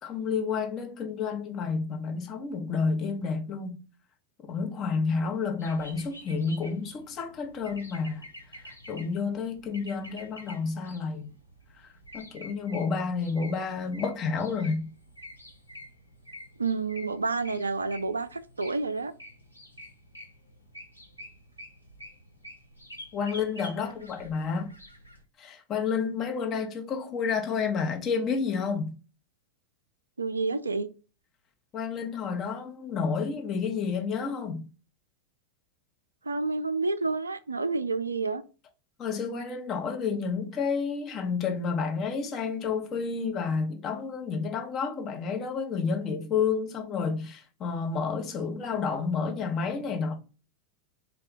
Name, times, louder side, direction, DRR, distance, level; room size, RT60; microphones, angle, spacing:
voice 1, 0.0-3.8 4.4-8.2 8.9-11.3 12.1-14.9 23.1-24.7 25.4-28.9 31.7-34.6 39.0-50.1, left 5 dB, 30° left, 0.8 m, -30 dB
sound 1, 5.6-25.2, left 1 dB, 90° left, 0.6 m, -48 dB
voice 2, 16.6-19.1 30.2-30.9 36.2-38.4, right 3 dB, 75° right, 0.3 m, -29 dB
3.5 x 2.3 x 3.8 m
figure-of-eight pair, 90°, 0 cm